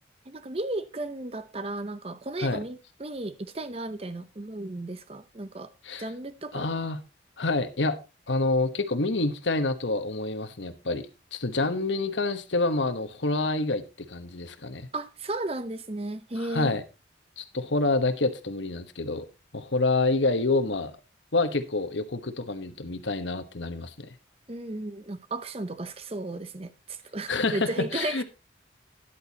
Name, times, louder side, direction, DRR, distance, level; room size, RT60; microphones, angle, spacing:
voice 1, 0.3-5.7 6.0-6.7 11.6-11.9 14.9-16.7 24.5-28.2, right 2 dB, 30° right, 0.7 m, -34 dB
voice 2, 6.5-7.0 7.4-14.9 16.3-16.8 17.4-19.3 19.5-20.9 21.3-24.1 27.3-28.2, left 2 dB, 75° left, 1.3 m, -27 dB
12.5 x 10.5 x 2.9 m
head